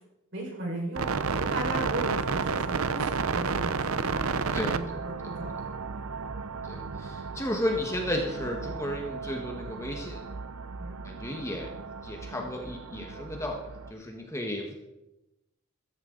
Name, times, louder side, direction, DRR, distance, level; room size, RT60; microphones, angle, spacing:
voice 1, 0.3-5.9 7.2-7.4 10.8-11.3 11.7-11.8, right 1 dB, 55° right, -2 dB, 5.1 m, -37 dB
sound 1, 1.0-13.9, right 5 dB, 75° right, 0.7 m, -33 dB
voice 2, 4.5-5.0 6.7-10.2 11.0-11.7 12.0-13.6 13.9-14.8, left 1 dB, 15° left, 1 dB, 1.5 m, -33 dB
16.0 x 14.0 x 4.0 m, 0.95 s
head